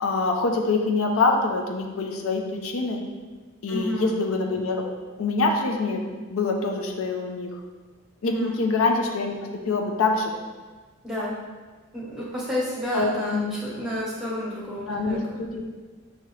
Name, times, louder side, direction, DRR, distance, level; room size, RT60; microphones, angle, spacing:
voice 1, 0.0-3.0 3.6-4.8 5.2-6.0 6.3-7.5 8.2-9.4 9.7-10.3 12.9-13.6 14.9-15.6, left 3 dB, 80° left, 2 dB, 0.5 m, -25 dB
voice 2, 3.7-4.1 8.3-8.5 11.0-11.3 11.9-15.4, equal, ahead, -7 dB, 1.0 m, -30 dB
5.9 x 2.8 x 3.2 m, 1.3 s
head